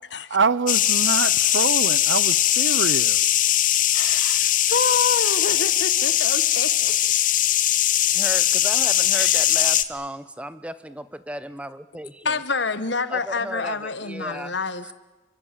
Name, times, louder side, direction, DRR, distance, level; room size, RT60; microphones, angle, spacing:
voice 1, 0.3-3.3, right 4 dB, 80° right, 0.8 m, -25 dB
sound 1, 0.7-9.8, left 12 dB, 45° left, 0.9 m, -20 dB
voice 2, 3.9-7.0 9.1-9.5 12.2-14.9, left 4 dB, 70° left, 1.4 m, -28 dB
voice 3, 8.1-12.4 13.1-14.6, right 1 dB, 5° right, 0.9 m, -35 dB
28.5 x 24.5 x 7.6 m
head